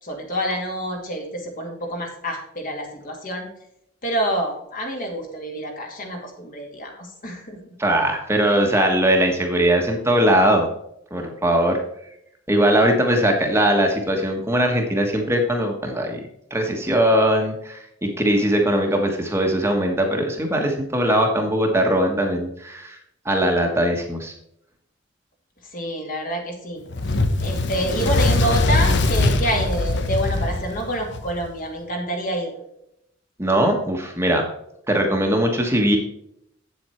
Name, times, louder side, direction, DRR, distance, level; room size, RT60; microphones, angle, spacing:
voice 1, 0.0-3.5 4.0-7.6 25.7-26.8 27.4-32.5, right 1 dB, 45° left, 2 dB, 2.3 m, -27 dB
voice 2, 7.8-10.7 11.1-11.8 12.5-16.2 16.5-23.0 23.2-24.3 33.4-34.4 34.9-36.0, right 1 dB, 15° right, 2 dB, 1.3 m, -20 dB
Fire, 26.9-31.5, left 2 dB, 60° left, 0.8 m, -21 dB
8.3 x 7.8 x 4.4 m, 0.76 s
head